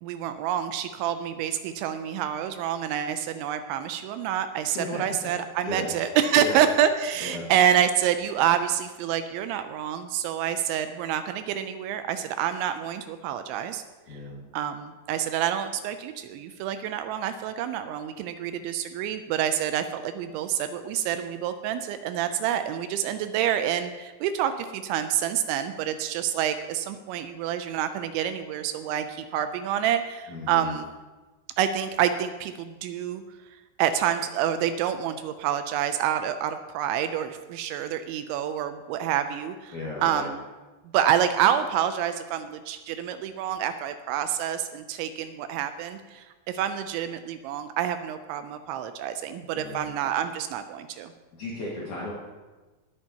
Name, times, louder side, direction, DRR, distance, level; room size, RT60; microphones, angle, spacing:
voice 1, 0.0-13.8 14.1-14.2 14.5-30.9 31.6-33.2 33.8-39.7 40.0-40.4 40.9-51.1, right 10 dB, 85° right, 9 dB, 2.8 m, -27 dB
voice 2, 14.1-14.4 30.3-30.8 39.7-40.2 49.5-49.9 51.3-52.1, left 2 dB, 50° left, -7 dB, 2.7 m, -35 dB
20.0 x 9.1 x 2.9 m, 1.2 s
omnidirectional pair, 5.4 m